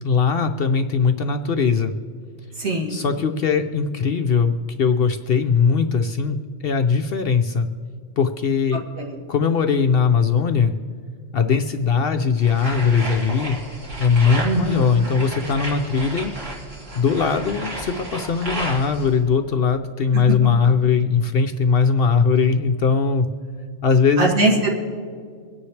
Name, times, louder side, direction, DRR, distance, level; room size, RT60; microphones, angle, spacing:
voice 1, 0.0-1.9 2.9-7.7 8.2-8.8 9.3-10.7 11.3-13.6 14.0-16.3 17.0-23.3 23.8-24.3, left 5 dB, 60° left, 6 dB, 0.7 m, -20 dB
voice 2, 2.6-3.0 9.0-9.2 14.4-14.8 24.2-24.7, right 2 dB, 80° right, -2 dB, 2.7 m, -21 dB
sound 1, 12.4-19.1, right 1 dB, 65° right, 3.1 m, -33 dB
24.5 x 9.9 x 3.3 m, 2.1 s
omnidirectional pair, 1.4 m